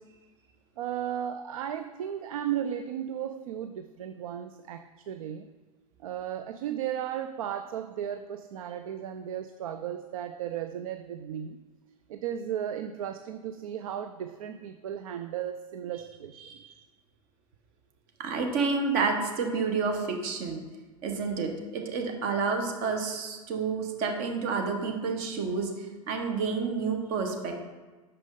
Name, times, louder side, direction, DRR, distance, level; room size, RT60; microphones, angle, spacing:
voice 1, 0.8-5.5 6.0-11.6 12.1-16.4, right 10 dB, 70° right, 9 dB, 0.4 m, -35 dB
voice 2, 16.4-16.7 18.2-20.6 21.0-27.5, right 4 dB, 50° right, 3 dB, 1.2 m, -29 dB
6.6 x 5.1 x 3.7 m, 1.3 s
hypercardioid pair, 95°, 19 cm